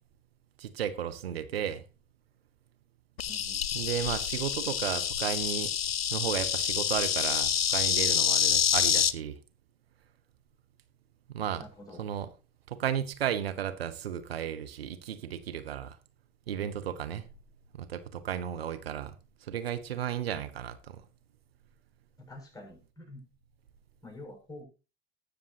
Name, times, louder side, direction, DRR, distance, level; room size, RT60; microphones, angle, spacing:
voice 1, 0.6-1.8 3.7-5.7 6.1-9.4 11.3-11.6 12.0-12.3 12.7-16.0 16.5-17.3 17.7-19.1 19.4-21.0, right 9 dB, 80° right, 0.9 m, -34 dB
Insect, 3.2-9.1, left 8 dB, 80° left, 0.7 m, -27 dB
voice 2, 3.3-3.7 11.6-12.0 22.2-23.2 24.0-24.6, left 1 dB, 10° left, 7.0 m, -47 dB
19.5 x 7.0 x 2.9 m
figure-of-eight pair, 70°, 30 cm